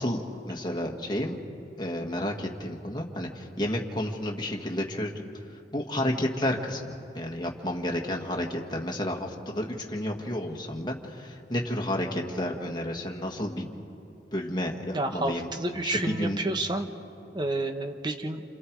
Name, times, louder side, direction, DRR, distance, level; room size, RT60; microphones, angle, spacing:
voice 1, 0.0-1.4 1.8-5.1 5.7-13.7 14.3-15.5 15.8-16.4, left 1 dB, 25° left, 1 dB, 1.7 m, -31 dB
voice 2, 14.9-16.9 17.3-18.4, right 2 dB, 25° right, 6 dB, 1.2 m, -30 dB
28.5 x 28.0 x 4.7 m, 2.8 s
head